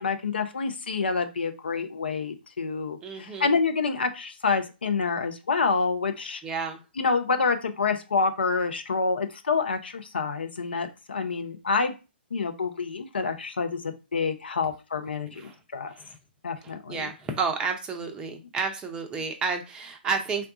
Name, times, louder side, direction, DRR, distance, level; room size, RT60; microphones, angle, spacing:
voice 1, 0.0-6.4 7.0-11.9 12.3-15.9 16.4-17.1, left 4 dB, 70° left, 7 dB, 0.6 m, -27 dB
voice 2, 3.0-3.5 6.4-6.8 15.3-15.6 15.9-16.2 16.6-20.5, right 5 dB, 15° right, 5 dB, 0.5 m, -31 dB
3.6 x 2.3 x 3.7 m, 0.29 s
figure-of-eight pair, 125°, 6 cm